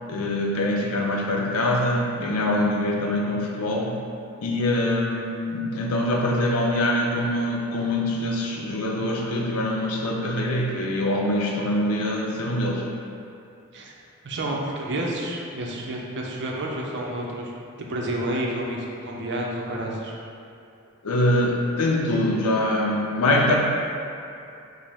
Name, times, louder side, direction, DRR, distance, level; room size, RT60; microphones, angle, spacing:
voice 1, 0.1-4.0 4.4-12.9 21.0-23.6, left 1 dB, 90° left, -1 dB, 0.6 m, -24 dB
voice 2, 14.2-17.5 17.8-20.2, right 1 dB, 55° right, -2 dB, 0.5 m, -30 dB
5.0 x 2.0 x 3.4 m, 2.6 s
head